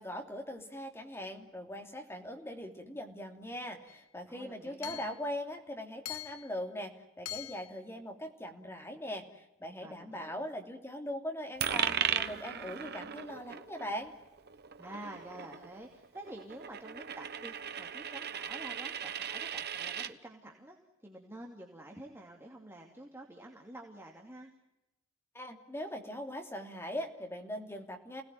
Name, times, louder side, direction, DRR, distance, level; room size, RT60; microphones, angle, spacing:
voice 1, 0.0-14.1 25.3-28.2, equal, 10° left, 3 dB, 3.0 m, -41 dB
Hammer / Chink clink, 3.9-4.0 4.8-5.2 6.0-6.5 7.2-7.7, left 13 dB, 80° left, 1.3 m, -43 dB
voice 2, 4.3-5.1 9.8-10.4 14.8-24.5, right 1 dB, 10° right, 1 dB, 2.7 m, -49 dB
Coin (dropping), 11.6-20.1, right 8 dB, 50° right, 1.2 m, -37 dB
29.5 x 19.0 x 9.3 m, 0.93 s
head